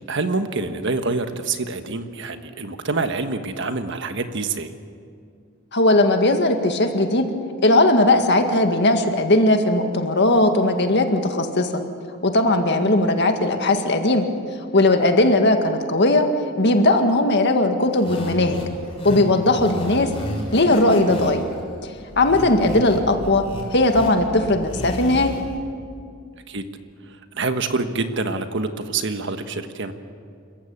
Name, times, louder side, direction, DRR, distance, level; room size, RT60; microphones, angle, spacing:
voice 1, 0.1-4.7 26.5-26.6 27.3-29.9, right 3 dB, 60° right, 8 dB, 1.4 m, -26 dB
voice 2, 5.7-7.2 7.6-11.8 12.2-14.2 14.7-16.3 16.6-18.6 19.0-20.1 20.5-21.4 21.8-25.3, left 2 dB, 55° left, 5 dB, 1.9 m, -18 dB
sound 1, 17.9-25.6, equal, 25° left, 5.7 m, -33 dB
27.5 x 15.0 x 8.6 m, 2.3 s
head